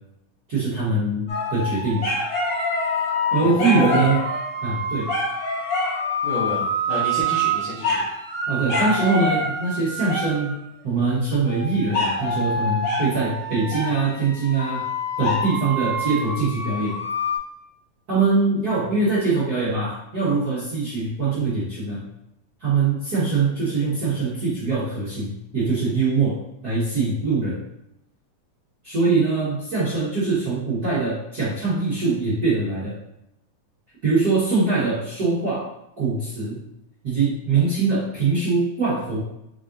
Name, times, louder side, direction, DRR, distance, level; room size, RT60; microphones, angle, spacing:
voice 1, 0.5-2.0 3.3-4.2 4.6-5.1 8.5-10.5 10.8-14.8 15.2-16.9 18.1-22.0 22.6-27.6 28.8-32.9 34.0-35.7 36.0-36.6 37.0-39.2, right 4 dB, 55° right, -11 dB, 1.0 m, -23 dB
sound 1, 1.3-10.5 11.4-17.4, left 1 dB, 60° left, 2.5 m, -26 dB
voice 2, 3.4-4.0 6.2-8.0, left 1 dB, 75° left, -7 dB, 1.1 m, -28 dB
5.1 x 3.7 x 2.6 m, 0.82 s
omnidirectional pair, 3.5 m